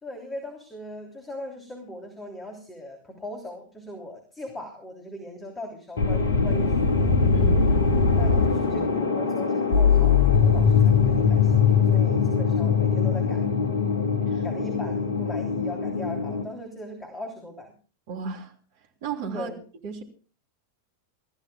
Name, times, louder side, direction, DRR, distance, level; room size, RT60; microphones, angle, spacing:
voice 1, 0.0-7.1 8.2-13.4 14.4-17.7 19.3-19.6, left 1 dB, 15° left, 3 dB, 3.3 m, -39 dB
sound 1, 6.0-16.4, left 5 dB, 65° left, 2.0 m, -21 dB
voice 2, 7.3-7.6 14.3-14.4 18.1-18.5 19.0-19.5 19.8-20.0, right 5 dB, 50° right, 3 dB, 3.4 m, -33 dB
28.5 x 15.0 x 2.3 m, 0.38 s
figure-of-eight pair, 90°, 0 cm